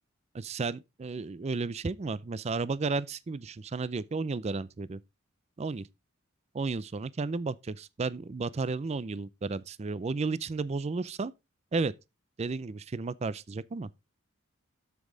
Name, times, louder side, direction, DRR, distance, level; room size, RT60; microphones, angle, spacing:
voice 1, 0.3-5.0 5.6-5.9 6.5-11.3 11.7-11.9 12.4-13.9, right 4 dB, 30° right, 0.4 m, -33 dB
8.2 x 7.4 x 3.8 m
head